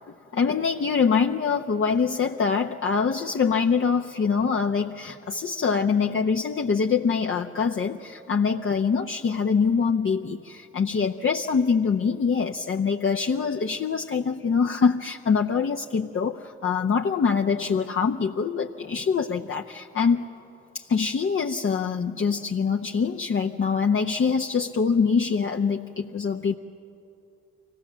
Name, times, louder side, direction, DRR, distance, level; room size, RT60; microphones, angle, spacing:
voice 1, 0.3-20.3 20.7-26.5, left 5 dB, 40° left, 2 dB, 0.8 m, -24 dB
24.5 x 17.0 x 7.4 m, 2.7 s
hypercardioid pair, 45°, 30 cm